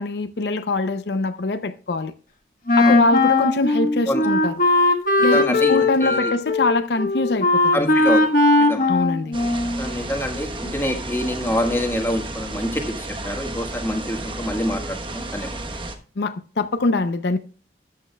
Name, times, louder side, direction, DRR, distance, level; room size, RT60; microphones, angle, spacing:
voice 1, 0.0-2.1 2.8-4.5 5.2-7.9 8.9-9.4 16.2-17.4, left 2 dB, 70° left, 0.6 m, -23 dB
Wind instrument woodwind instrument, 2.7-9.9, left 2 dB, 50° left, 1.3 m, -19 dB
voice 2, 5.2-6.3 7.7-8.9 9.8-15.6, equal, 15° left, 1.4 m, -26 dB
sound 1, 9.3-16.0, right 2 dB, 30° right, 1.0 m, -32 dB
13.0 x 8.5 x 2.2 m
head